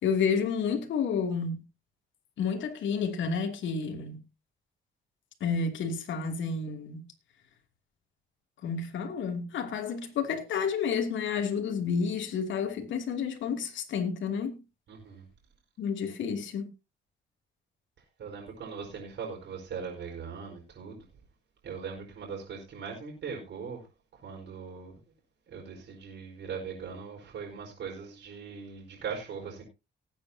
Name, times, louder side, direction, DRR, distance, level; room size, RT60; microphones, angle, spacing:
voice 1, 0.0-1.6 2.4-4.2 5.4-7.0 8.6-14.6 15.8-16.7, left 6 dB, 70° left, 2.8 m, -30 dB
voice 2, 14.9-15.2 18.2-21.0 21.6-23.8 24.2-25.0 25.5-29.6, right 6 dB, 65° right, 4.9 m, -40 dB
19.0 x 8.8 x 2.8 m
cardioid pair, 90°, 20 cm